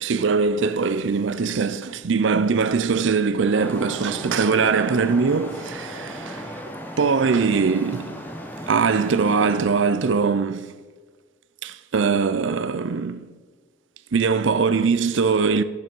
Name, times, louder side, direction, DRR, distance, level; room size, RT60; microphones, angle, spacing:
voice 1, 0.0-6.5 7.0-8.2 8.7-10.7 11.6-13.3 14.1-15.6, right 5 dB, 80° right, 0.5 m, -21 dB
Traffic noise roadway noise, 3.6-9.6, equal, 10° left, 1.1 m, -36 dB
11.5 x 9.0 x 5.3 m
head